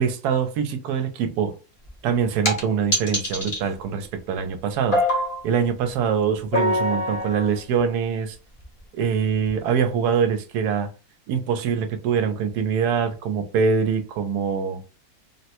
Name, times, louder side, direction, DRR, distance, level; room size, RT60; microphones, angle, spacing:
voice 1, 0.0-1.5 2.0-5.0 5.4-8.4 9.0-10.9 11.3-14.8, right 6 dB, 85° right, 1.1 m, -24 dB
sound 1, 1.9-2.0 2.4-2.6 2.9-3.6 4.9-5.4 6.5-7.6 8.6-8.7 9.5-9.6, equal, 25° left, 0.8 m, -23 dB
3.5 x 2.1 x 2.8 m
omnidirectional pair, 1.7 m